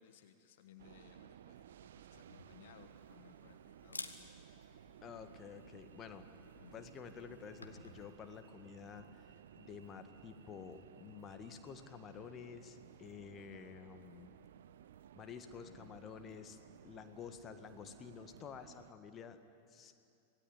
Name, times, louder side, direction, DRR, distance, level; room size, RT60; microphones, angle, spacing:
voice 1, 0.0-1.6 1.9-4.3 6.6-6.8 15.6-15.9, left 10 dB, 55° left, 8 dB, 1.2 m, -62 dB
sound 1, 0.8-18.9, right 10 dB, 60° right, 0.6 m, -58 dB
Camera, 2.1-8.0, left 3 dB, 80° left, 1.5 m, -54 dB
voice 2, 5.0-6.3 6.5-14.3 15.1-16.6 16.8-19.4 19.7-19.9, left 7 dB, 25° left, 8 dB, 1.7 m, -51 dB
26.0 x 18.5 x 10.0 m, 2.5 s
figure-of-eight pair, 90°, 0 cm